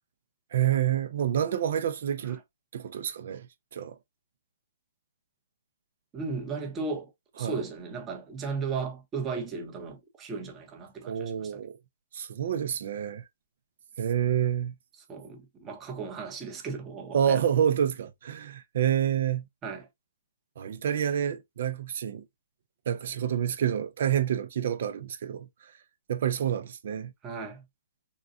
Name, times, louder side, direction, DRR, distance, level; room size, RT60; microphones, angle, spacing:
voice 1, 0.5-2.4 2.7-3.5 3.7-4.0 7.4-7.6 11.1-11.8 12.1-13.2 14.0-14.7 17.1-19.4 20.6-22.2 22.9-25.5 26.1-27.1, right 9 dB, 55° right, 0.6 m, -28 dB
voice 2, 6.1-11.7 15.1-17.4 19.6-19.9 27.2-27.6, right 4 dB, 15° right, 0.8 m, -36 dB
3.9 x 2.2 x 2.5 m
hypercardioid pair, 160°, 0 cm